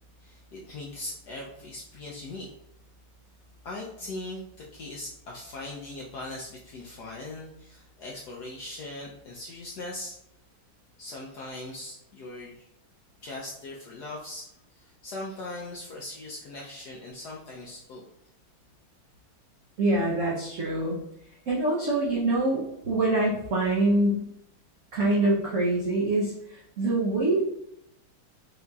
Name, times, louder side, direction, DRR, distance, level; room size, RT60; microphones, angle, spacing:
voice 1, 0.2-2.5 3.6-10.2 11.0-12.7 13.2-18.0, left 2 dB, 75° left, -3 dB, 0.9 m, -40 dB
voice 2, 19.8-21.0 21.5-24.2 24.9-27.4, right 2 dB, 80° right, -5 dB, 0.7 m, -25 dB
5.6 x 2.7 x 2.3 m, 0.78 s
omnidirectional pair, 2.3 m